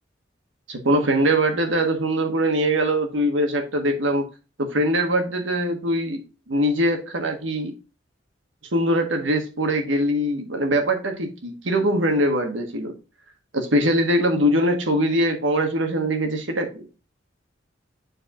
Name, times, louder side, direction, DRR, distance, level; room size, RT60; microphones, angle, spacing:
voice 1, 0.7-4.3 4.6-6.2 6.5-7.7 8.7-12.9 13.5-16.8, equal, 85° right, 1.5 m, -22 dB
9.7 x 4.5 x 2.5 m
head